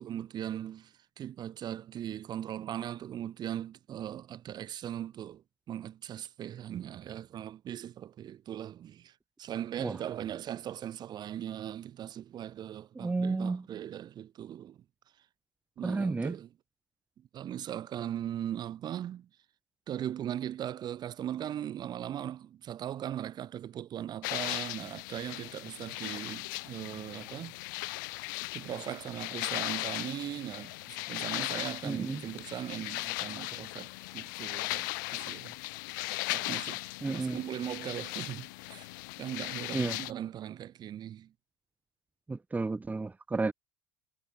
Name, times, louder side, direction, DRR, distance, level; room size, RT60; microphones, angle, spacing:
voice 1, 0.0-9.1 9.4-14.8 15.8-16.5 17.3-19.3 19.9-27.5 28.5-35.6 36.3-38.9 39.2-41.3, right 11 dB, 40° right, 1.3 m, -39 dB
voice 2, 12.9-13.7 15.8-16.3 31.8-32.2 37.0-37.4 39.7-40.0 42.3-43.5, right 3 dB, 15° right, 1.4 m, -32 dB
sound 1, 24.2-40.1, left 24 dB, 65° left, 1.8 m, -38 dB
figure-of-eight pair, 70°, 11 cm